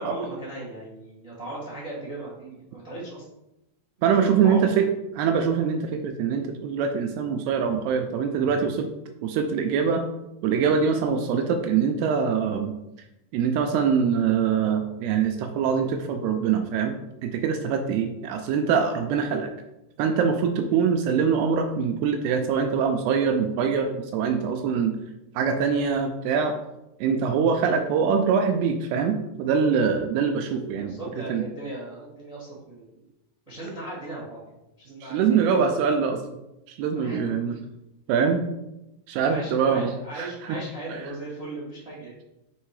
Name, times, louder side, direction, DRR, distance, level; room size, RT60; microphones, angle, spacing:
voice 1, 0.0-3.2 4.1-4.8 30.8-33.0 33.5-34.4 34.8-35.2 36.9-37.4 39.3-42.1, right 1 dB, 45° right, -6 dB, 0.4 m, -37 dB
voice 2, 4.0-4.9 5.2-8.9 9.2-10.0 10.4-12.7 13.3-16.9 17.2-19.5 20.0-24.9 25.4-26.6 27.0-31.5 35.0-36.2 36.7-37.6 38.1-38.5 39.1-40.6, right 6 dB, 85° right, 5 dB, 2.3 m, -24 dB
7.2 x 3.3 x 4.8 m, 0.92 s
omnidirectional pair, 5.1 m